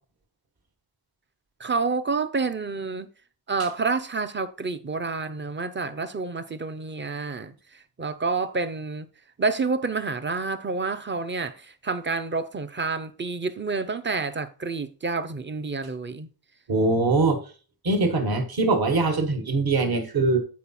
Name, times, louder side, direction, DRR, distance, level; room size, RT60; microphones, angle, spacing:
voice 1, 1.6-3.1 3.5-9.1 9.4-16.3, right 4 dB, 25° right, 0.5 m, -29 dB
voice 2, 16.7-17.4 17.8-20.4, right 3 dB, 45° right, 1.4 m, -22 dB
8.5 x 4.7 x 4.2 m
wide cardioid pair, 150°, 50 cm